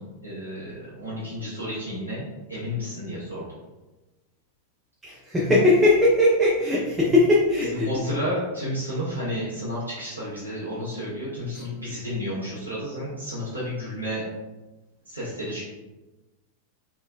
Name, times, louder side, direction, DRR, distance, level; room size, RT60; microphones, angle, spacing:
voice 1, 0.0-2.2 2.5-3.4 7.7-14.2 15.1-15.6, equal, 90° right, -10 dB, 0.8 m, -31 dB
voice 2, 5.0-8.1 11.5-11.6, left 2 dB, 10° right, -6 dB, 0.6 m, -20 dB
3.7 x 2.1 x 2.3 m, 1.1 s
figure-of-eight pair, 90°, 0 cm